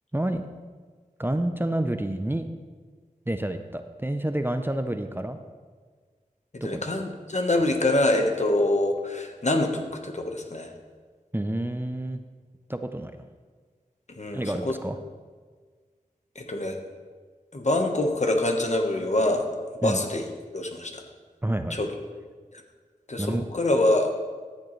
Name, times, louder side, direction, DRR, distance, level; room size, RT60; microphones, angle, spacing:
voice 1, 1.2-2.4 3.3-5.4 6.7-6.8 11.3-12.2 12.7-13.2 14.3-15.0 19.8-20.0 21.4-21.8 23.2-23.5, right 1 dB, 15° right, 7 dB, 0.5 m, -28 dB
voice 2, 6.5-10.7 14.2-14.8 16.3-16.8 17.5-19.5 19.8-20.2 20.5-21.0 21.7-21.9 22.5-22.6 23.1-24.1, left 1 dB, 55° left, 3 dB, 1.1 m, -25 dB
13.5 x 7.4 x 3.2 m, 1.5 s
wide cardioid pair, 45°, 15 cm